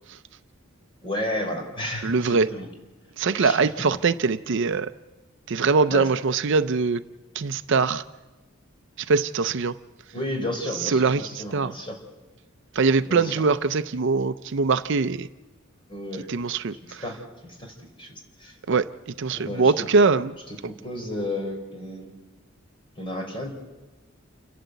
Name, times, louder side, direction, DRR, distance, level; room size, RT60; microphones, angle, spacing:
voice 1, 1.0-2.7 3.4-3.6 5.9-6.1 10.1-12.0 13.1-13.3 15.9-16.3 17.0-18.5 19.3-19.9 20.5-22.1 23.0-23.5, left 1 dB, 25° left, 2 dB, 4.5 m, -32 dB
voice 2, 2.0-2.5 3.2-4.9 5.5-7.0 7.3-8.0 9.0-9.8 10.8-11.7 12.7-15.3 16.3-17.0 18.7-18.9 19.2-20.4, right 4 dB, 60° right, 12 dB, 0.5 m, -22 dB
29.0 x 11.5 x 8.1 m, 1.2 s
head